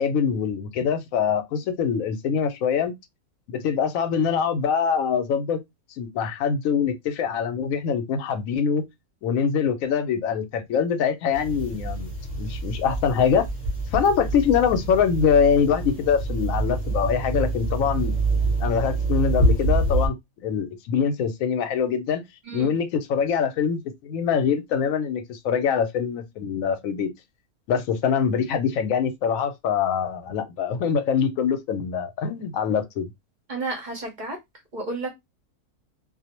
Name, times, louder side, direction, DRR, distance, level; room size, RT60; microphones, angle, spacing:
voice 1, 0.0-2.9 3.5-5.6 6.0-8.9 9.2-12.1 12.4-13.5 13.9-18.2 18.6-22.2 22.5-27.1 27.7-33.1, left 7 dB, 70° left, 0.9 m, -24 dB
sound 1, 11.3-20.1, right 2 dB, 40° left, 0.6 m, -26 dB
voice 2, 33.5-34.4 34.7-35.1, right 2 dB, 45° right, 0.6 m, -31 dB
2.4 x 2.0 x 2.8 m
omnidirectional pair, 1.5 m